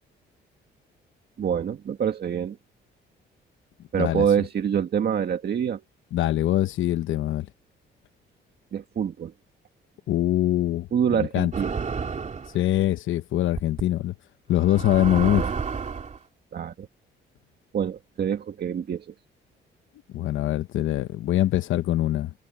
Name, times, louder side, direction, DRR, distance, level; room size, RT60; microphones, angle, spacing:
voice 1, 1.4-2.6 3.9-5.8 8.7-9.3 10.9-11.7 15.2-15.5 16.5-16.9 17.7-19.1, right 8 dB, 55° right, 1.9 m, -26 dB
voice 2, 6.1-7.5 10.1-10.9 11.2-11.5 12.5-14.1 14.5-15.4 20.1-22.3, left 13 dB, 80° left, 0.9 m, -23 dB
sound 1, 11.5-12.6 13.6-13.8 14.6-16.2, right 5 dB, 35° right, 3.0 m, -30 dB
cardioid pair, 90°, 20 cm